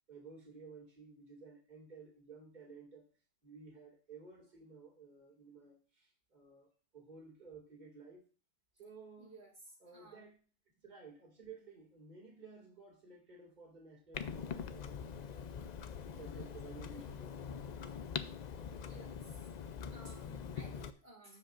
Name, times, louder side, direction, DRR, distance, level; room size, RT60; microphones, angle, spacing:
voice 1, 0.1-3.1 3.4-8.3 8.8-9.4 9.8-10.4 10.8-15.7 16.2-17.4, right 4 dB, 35° right, 2.4 m, -55 dB
voice 2, 9.2-9.5 9.9-10.2 16.1-16.6 18.7-19.2 19.9-21.4, right 1 dB, 55° right, 2.2 m, -56 dB
Clock, 14.1-20.9, left 7 dB, 60° left, 0.4 m, -43 dB
15.5 x 5.3 x 2.5 m
omnidirectional pair, 1.3 m